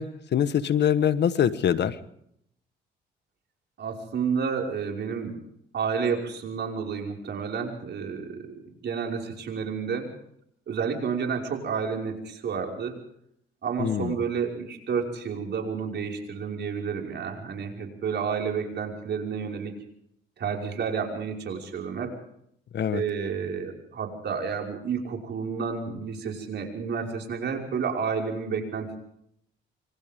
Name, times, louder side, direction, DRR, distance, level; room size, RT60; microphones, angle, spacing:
voice 1, 0.0-2.0 13.8-14.2 22.7-23.0, left 9 dB, 60° left, 13 dB, 1.4 m, -24 dB
voice 2, 3.8-5.4 5.7-8.5 8.8-10.1 10.7-13.0 13.6-19.7 20.4-22.2 22.9-29.0, right 6 dB, 60° right, 1 dB, 5.6 m, -30 dB
26.5 x 26.0 x 3.7 m, 0.71 s
cardioid pair, 90°, 20 cm